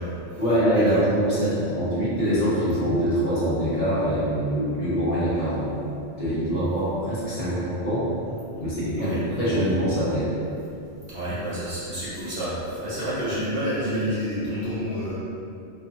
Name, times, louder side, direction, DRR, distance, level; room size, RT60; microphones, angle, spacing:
voice 1, 0.4-5.7 6.2-8.1 8.6-10.3, equal, 40° left, -11 dB, 0.6 m, -24 dB
voice 2, 8.9-9.3 11.1-15.1, equal, 55° right, -11 dB, 0.9 m, -29 dB
2.5 x 2.4 x 2.6 m, 2.6 s
omnidirectional pair, 1.2 m